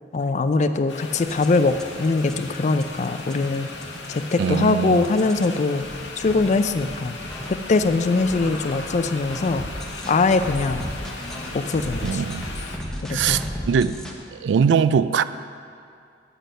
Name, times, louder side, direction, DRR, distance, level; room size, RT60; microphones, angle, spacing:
voice 1, 0.1-3.7 4.1-5.8 6.2-7.2 7.5-9.7 10.1-10.9 11.5-12.2 13.0-13.4, left 3 dB, 40° left, 10 dB, 0.4 m, -22 dB
sound 1, 0.9-12.8, left 3 dB, 80° left, 0.9 m, -37 dB
sound 2, 1.2-14.1, equal, 5° left, 0.8 m, -36 dB
voice 2, 4.4-5.0 12.0-12.5 13.1-14.0 14.3-15.2, right 6 dB, 75° right, 14 dB, 0.3 m, -21 dB
8.0 x 6.3 x 6.6 m, 2.4 s
head